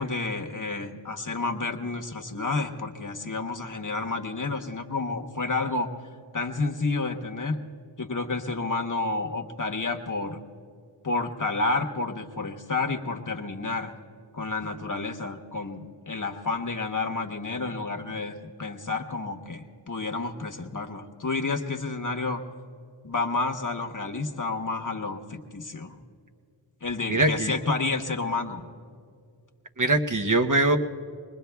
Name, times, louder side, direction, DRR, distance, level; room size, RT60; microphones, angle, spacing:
voice 1, 0.0-5.9 6.3-7.6 8.0-10.4 11.0-13.9 14.3-22.4 23.0-26.0 26.8-28.7, left 3 dB, 45° left, 4 dB, 1.1 m, -30 dB
voice 2, 27.1-27.5 29.8-30.8, right 2 dB, 45° right, 4 dB, 0.9 m, -22 dB
25.0 x 20.5 x 2.3 m, 2.2 s
wide cardioid pair, 50°, 45 cm